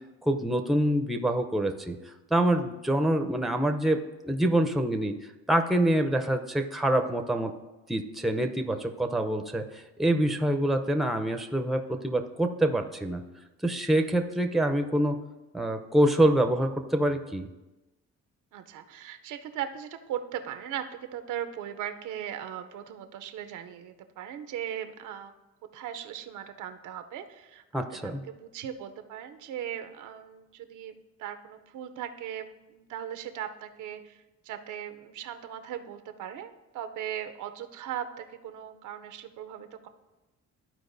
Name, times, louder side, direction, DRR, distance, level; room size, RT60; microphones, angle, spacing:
voice 1, 0.2-2.0 2.3-5.2 5.5-7.5 7.9-13.2 13.6-15.2 15.5-17.5 27.7-28.2, right 1 dB, ahead, 6 dB, 0.6 m, -26 dB
voice 2, 18.5-25.3 25.7-27.6 27.9-30.9 31.2-39.9, right 10 dB, 80° right, 8 dB, 0.6 m, -38 dB
13.0 x 4.6 x 2.6 m, 1.1 s
cardioid pair, 90°, 30 cm